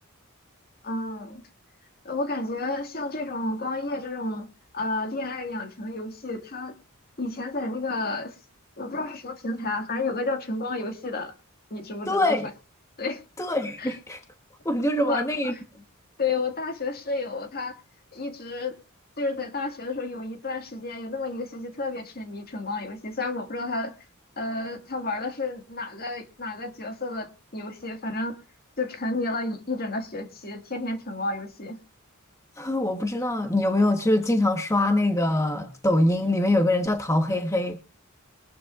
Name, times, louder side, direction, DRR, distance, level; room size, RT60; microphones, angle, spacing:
voice 1, 0.8-1.4 2.0-4.5 4.7-6.7 7.2-8.4 8.8-11.3 11.7-12.4 13.0-13.2 13.8-14.0 15.0-15.6 16.2-17.8 18.1-18.7 19.2-23.9 24.4-28.4 28.8-31.8, left 2 dB, 45° left, 1.9 m, -31 dB
voice 2, 12.1-12.5 13.4-14.2 14.6-15.5 32.6-37.8, left 1 dB, 15° left, 1.1 m, -23 dB
22.0 x 11.5 x 2.4 m
head